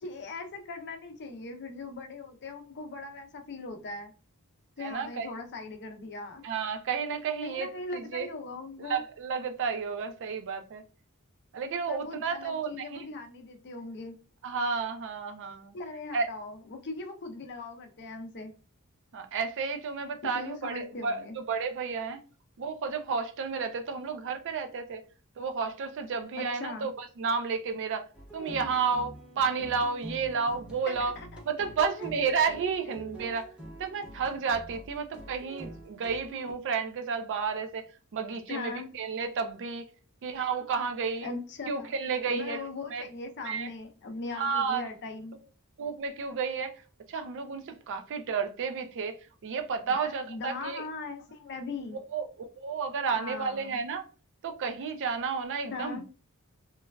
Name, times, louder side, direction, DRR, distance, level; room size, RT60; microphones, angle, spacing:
voice 1, 0.0-4.1 4.8-6.4 7.4-9.0 11.9-14.2 15.7-18.5 20.2-21.4 26.4-26.9 30.9-31.4 31.8-32.1 38.5-38.9 41.2-41.9 42.3-45.4 49.9-52.0 53.1-53.8 55.7-56.0, left 3 dB, 50° left, 0.6 m, -40 dB
voice 2, 4.8-5.3 6.4-8.3 8.8-10.8 11.5-13.1 14.4-15.7 16.1-16.3 19.1-22.2 22.6-25.0 25.4-28.1 28.3-31.1 31.5-33.5 33.8-37.8 38.1-39.8 40.2-41.3 41.7-43.0 43.4-43.7 44.3-44.8 45.8-46.8 47.1-49.2 49.4-50.8 51.9-54.0 54.4-56.0, right 5 dB, 55° right, 0.4 m, -32 dB
sound 1, 28.1-36.5, right 1 dB, 5° right, 0.6 m, -46 dB
3.1 x 2.3 x 2.2 m
head